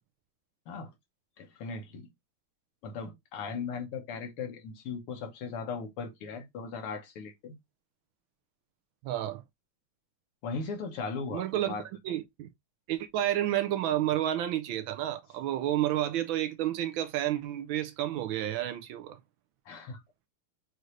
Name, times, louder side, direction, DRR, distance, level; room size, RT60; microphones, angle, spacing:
voice 1, 1.4-2.1 2.8-7.5 10.4-11.8 19.7-20.0, left 5 dB, 85° left, 2.1 m, -38 dB
voice 2, 9.0-9.4 11.3-11.8 12.0-12.5 12.9-19.2, right 12 dB, 75° right, 1.3 m, -30 dB
6.3 x 2.6 x 3.1 m
omnidirectional pair, 2.4 m